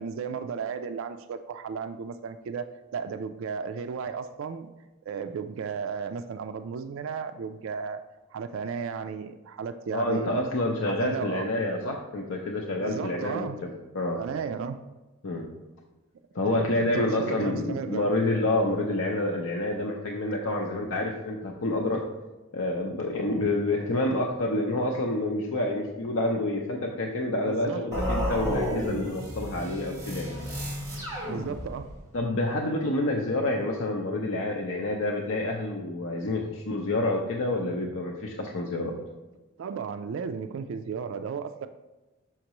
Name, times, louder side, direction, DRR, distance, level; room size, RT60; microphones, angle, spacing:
voice 1, 0.0-4.7 5.1-8.0 8.3-10.4 10.8-11.5 12.8-13.7 14.2-14.8 16.5-18.1 27.5-27.9 31.3-31.9 39.6-41.7, right 6 dB, 65° right, 9 dB, 0.3 m, -34 dB
voice 2, 9.9-14.2 15.2-15.5 16.3-22.1 22.5-30.3 32.1-38.9, left 2 dB, 65° left, 0 dB, 0.6 m, -28 dB
sound 1, 27.9-32.0, equal, 15° right, 1.7 m, -32 dB
6.4 x 5.8 x 3.0 m, 1.1 s
head